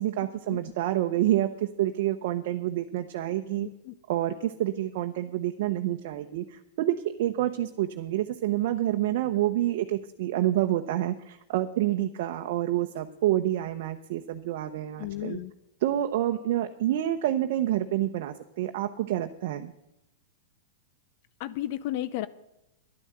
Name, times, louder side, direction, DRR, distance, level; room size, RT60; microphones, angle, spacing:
voice 1, 0.0-3.7 4.1-15.4 15.8-19.7, right 13 dB, 60° right, 6 dB, 0.8 m, -28 dB
voice 2, 15.0-15.5 21.4-22.3, left 14 dB, 50° left, 16 dB, 0.6 m, -33 dB
11.0 x 9.0 x 7.8 m, 0.88 s
hypercardioid pair, 130°, 0 cm